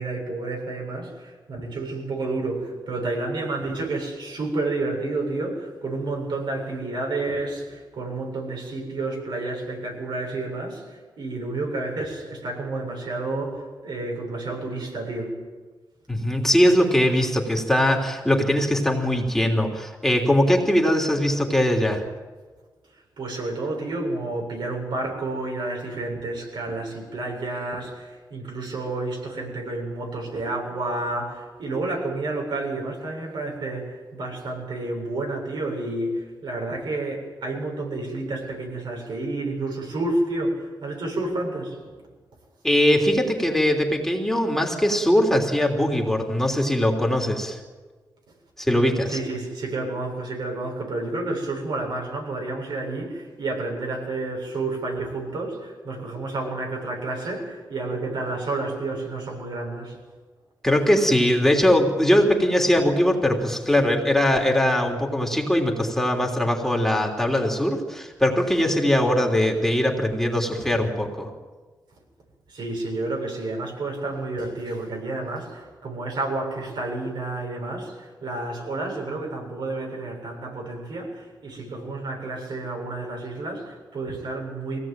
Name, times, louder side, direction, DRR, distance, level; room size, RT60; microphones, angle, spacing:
voice 1, 0.0-15.3 23.2-41.9 49.1-60.0 70.6-70.7 72.5-84.8, right 2 dB, 75° right, 0 dB, 7.7 m, -30 dB
voice 2, 16.1-22.0 42.6-47.6 48.6-49.2 60.6-71.3, left 1 dB, 5° left, 1 dB, 3.3 m, -21 dB
23.0 x 18.0 x 9.1 m, 1.4 s
wide cardioid pair, 100°, 8 cm